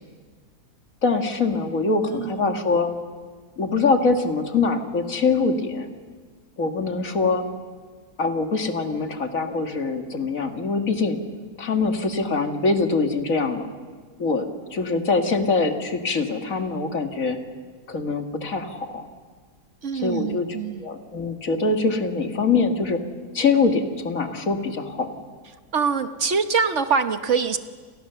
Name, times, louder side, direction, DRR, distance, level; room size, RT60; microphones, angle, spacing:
voice 1, 1.0-2.9 3.6-5.9 6.6-7.5 8.2-11.2 11.6-13.7 14.2-17.4 17.9-19.1 19.9-20.5 20.8-23.0 23.3-25.1, left 4 dB, 60° left, 5 dB, 2.4 m, -23 dB
voice 2, 2.1-2.6 19.8-20.9 25.7-27.6, right 6 dB, 55° right, 9 dB, 1.3 m, -24 dB
29.0 x 29.0 x 7.0 m, 1.5 s
omnidirectional pair, 1.6 m